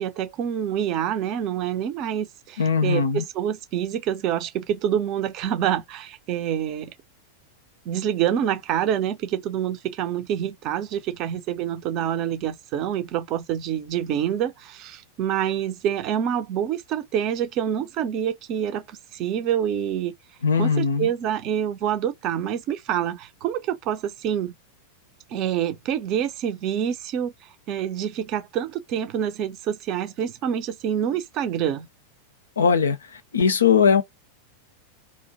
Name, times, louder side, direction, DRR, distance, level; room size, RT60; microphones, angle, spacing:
voice 1, 0.0-6.9 7.9-20.1 20.6-24.5 25.3-31.9, right 9 dB, 40° right, 0.5 m, -27 dB
voice 2, 2.6-3.2 20.4-21.1 32.6-34.0, left 6 dB, 70° left, 0.5 m, -20 dB
2.4 x 2.0 x 2.6 m
figure-of-eight pair, 90°, 0 cm